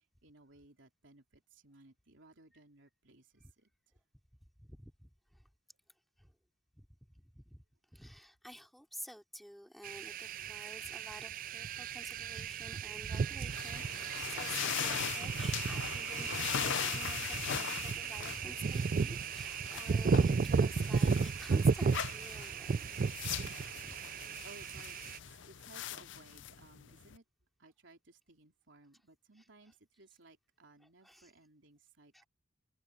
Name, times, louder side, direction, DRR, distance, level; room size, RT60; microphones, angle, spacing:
voice 1, 0.0-3.7 24.4-27.2 27.6-32.3, right 2 dB, 65° right, 3.6 m, -60 dB
voice 2, 4.6-5.4 6.2-6.3 6.7-6.8 7.1-7.6 7.9-23.1 23.8-24.0 31.0-31.3 32.1-32.3, equal, ahead, 3.4 m, -51 dB
sound 1, 9.8-25.2, right 5 dB, 45° right, 0.4 m, -34 dB
sound 2, 13.5-27.2, left 9 dB, 65° left, 0.6 m, -41 dB
head